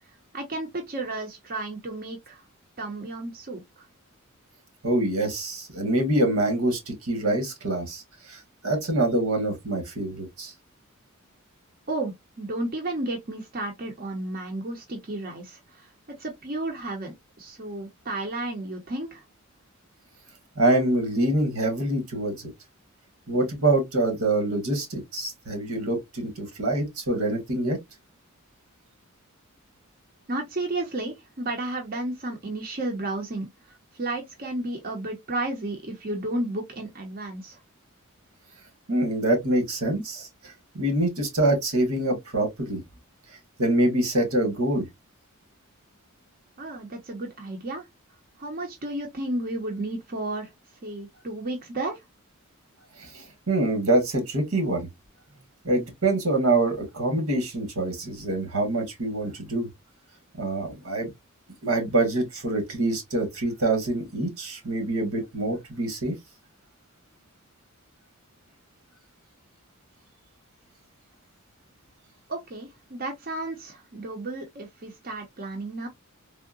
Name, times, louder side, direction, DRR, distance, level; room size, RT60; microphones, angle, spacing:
voice 1, 0.3-2.4 2.8-3.9 11.9-15.9 16.2-19.2 30.3-33.5 33.9-37.6 46.6-47.9 48.4-50.5 50.8-52.0 72.3-75.9, right 2 dB, 40° right, 0.7 m, -32 dB
voice 2, 4.8-10.5 20.5-22.5 23.3-27.8 38.9-42.8 43.6-44.9 53.0-54.9 55.6-59.7 60.4-61.1 61.6-66.1, right 2 dB, 85° right, 1.3 m, -25 dB
3.6 x 2.1 x 2.3 m
head